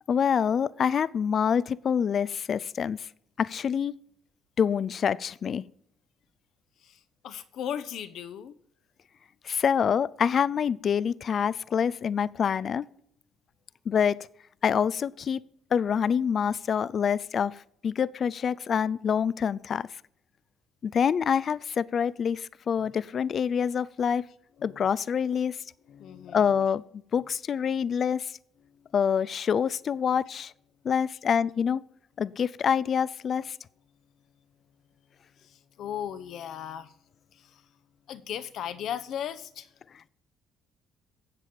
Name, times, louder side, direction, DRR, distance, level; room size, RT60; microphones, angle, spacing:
voice 1, 0.1-3.1 3.4-3.9 4.6-5.7 9.4-12.8 13.9-14.3 14.6-15.4 15.7-19.9 20.8-24.2 24.6-25.6 26.3-26.8 27.1-28.3 28.9-30.5 30.8-31.8 32.2-33.6, left 7 dB, 50° left, 0.4 m, -26 dB
voice 2, 6.8-8.6 22.7-22.9 24.6-24.9 25.9-26.5 27.1-27.3 28.7-28.9 35.4-37.0 37.3-37.7 38.1-39.8, left 9 dB, 70° left, 0.8 m, -38 dB
11.0 x 7.6 x 5.2 m
supercardioid pair, 80°, 0 cm